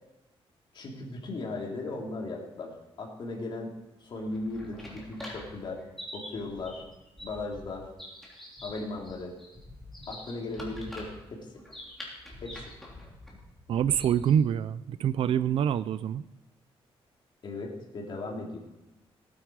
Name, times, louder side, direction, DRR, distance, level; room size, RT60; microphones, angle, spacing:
voice 1, 0.7-3.7 4.0-5.8 6.1-6.8 7.2-7.9 8.6-9.3 10.1-11.5 12.4-12.6 17.4-18.6, left 2 dB, 50° left, -1 dB, 3.2 m, -37 dB
sound 1, 4.2-14.4, left 1 dB, ahead, 3.4 m, -45 dB
voice 2, 13.7-16.2, right 9 dB, 65° right, 14 dB, 0.4 m, -26 dB
18.5 x 9.6 x 4.8 m, 0.99 s
wide cardioid pair, 155°, 10 cm